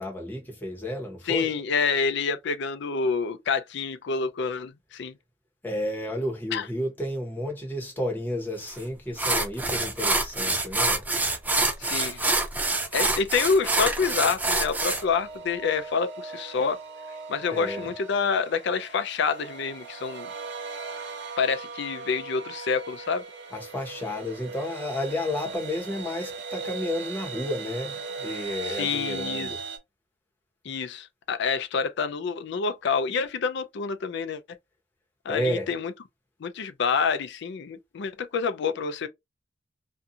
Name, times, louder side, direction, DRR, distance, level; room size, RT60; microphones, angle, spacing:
voice 1, 0.0-1.5 5.6-11.0 17.5-17.9 23.5-29.6 35.3-35.7, left 1 dB, 10° left, 1.0 m, -31 dB
voice 2, 1.3-5.1 6.5-6.7 11.8-12.3 12.9-16.8 17.3-20.3 21.4-23.2 28.6-29.5 30.6-34.4 35.3-35.9 36.4-39.1, left 5 dB, 65° left, 0.4 m, -27 dB
sound 1, 8.7-8.8 9.2-15.0, right 2 dB, 10° right, 0.3 m, -26 dB
sound 2, 14.9-29.8, right 4 dB, 65° right, 0.7 m, -38 dB
2.6 x 2.4 x 2.7 m
head